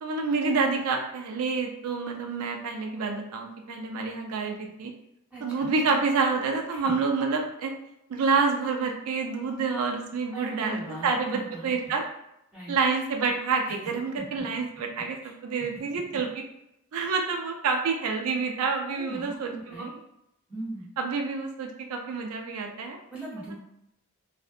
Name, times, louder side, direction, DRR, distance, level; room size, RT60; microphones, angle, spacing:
voice 1, 0.0-4.9 5.4-7.7 8.1-12.0 12.7-16.3 16.9-19.9 21.0-23.0, right 4 dB, 90° right, 2 dB, 0.4 m, -28 dB
voice 2, 5.3-5.7 6.7-6.9 10.3-12.0 12.5-12.7 14.2-14.3 18.9-20.0 20.5-20.9 23.1-23.6, right 1 dB, 5° right, -8 dB, 0.9 m, -40 dB
2.5 x 2.0 x 2.5 m, 0.82 s
head